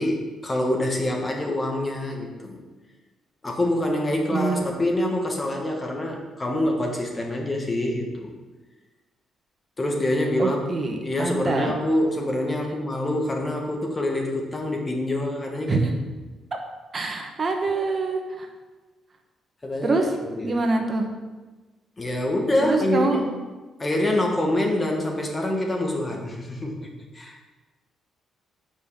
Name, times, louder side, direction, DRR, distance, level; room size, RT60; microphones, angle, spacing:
voice 1, 0.0-2.6 3.4-8.3 9.8-15.8 19.6-20.6 22.0-23.3 23.8-26.9 27.1-27.4, left 1 dB, 25° left, 1 dB, 1.4 m, -26 dB
voice 2, 4.3-4.6 10.4-11.8 15.7-15.9 16.9-18.5 19.8-20.1 20.4-21.1 22.6-23.2, right 3 dB, 35° right, 3 dB, 1.1 m, -25 dB
5.4 x 5.3 x 6.6 m, 1.2 s
cardioid pair, 90°, 0 cm